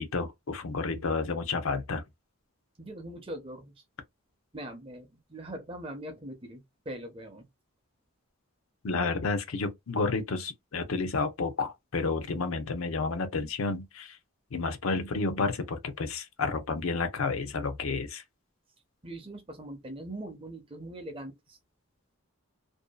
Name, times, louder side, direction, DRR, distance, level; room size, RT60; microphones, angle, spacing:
voice 1, 0.0-2.0 8.8-14.2 14.5-18.2, left 4 dB, 75° left, 0.6 m, -31 dB
voice 2, 2.8-3.8 4.5-7.5 19.0-21.6, right 1 dB, 25° right, 0.5 m, -41 dB
2.6 x 2.3 x 2.2 m
head